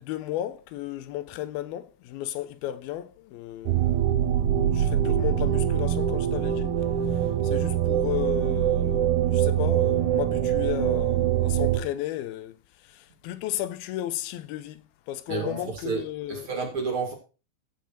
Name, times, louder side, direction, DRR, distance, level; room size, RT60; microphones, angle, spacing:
voice 1, 0.0-6.7 7.4-12.6 12.9-14.8 15.1-16.5, left 13 dB, 85° left, 2.6 m, -34 dB
sound 1, 3.7-11.8, right 10 dB, 70° right, 2.0 m, -24 dB
voice 2, 15.3-16.0 16.3-17.1, right 5 dB, 40° right, 2.6 m, -30 dB
15.0 x 5.6 x 4.3 m
omnidirectional pair, 4.3 m